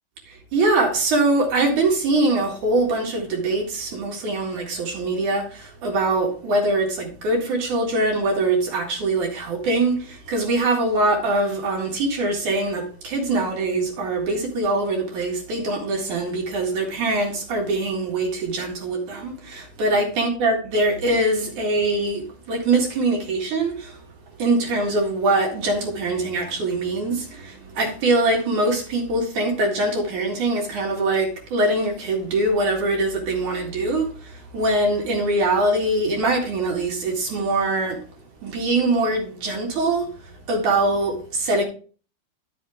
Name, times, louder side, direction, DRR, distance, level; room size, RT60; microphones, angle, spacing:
voice 1, 0.3-24.0 24.4-38.0 38.4-41.6, right 2 dB, 55° right, 2.9 m, -23 dB
12.0 x 5.9 x 3.5 m
omnidirectional pair, 4.7 m